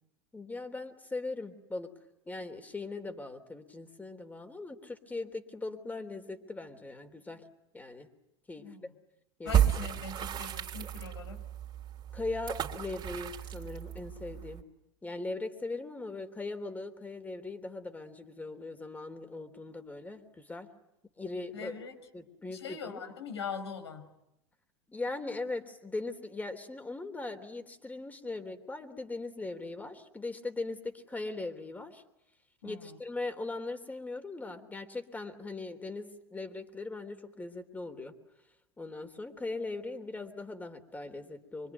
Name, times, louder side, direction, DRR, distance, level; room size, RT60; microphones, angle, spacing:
voice 1, 0.3-1.9 2.3-7.4 7.7-8.1 8.5-8.9 9.4-9.6 12.1-14.6 15.0-20.7 21.2-21.9 22.1-23.0 24.9-32.0 32.6-38.1 38.8-41.7, left 3 dB, 10° left, 8 dB, 3.4 m, -39 dB
voice 2, 8.6-8.9 9.4-11.4 21.5-22.0 22.5-24.1 32.6-33.0, left 5 dB, 90° left, 5 dB, 5.3 m, -42 dB
sound 1, 9.5-14.6, right 10 dB, 35° right, 3.4 m, -32 dB
25.5 x 24.0 x 9.4 m, 0.86 s
hypercardioid pair, 100°, 14 cm